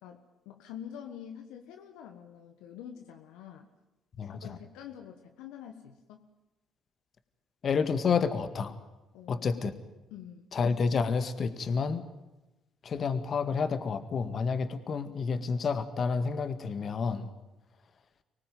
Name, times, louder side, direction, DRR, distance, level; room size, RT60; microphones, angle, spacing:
voice 1, 0.0-3.7 4.2-6.3 9.1-9.7 10.1-10.5, left 9 dB, 75° left, 5 dB, 1.4 m, -46 dB
voice 2, 4.2-4.6 7.6-8.8 9.3-9.7 10.5-12.1 12.8-17.3, left 5 dB, 50° left, 10 dB, 1.9 m, -29 dB
25.0 x 18.5 x 9.3 m, 1.0 s
hypercardioid pair, 50°, 0 cm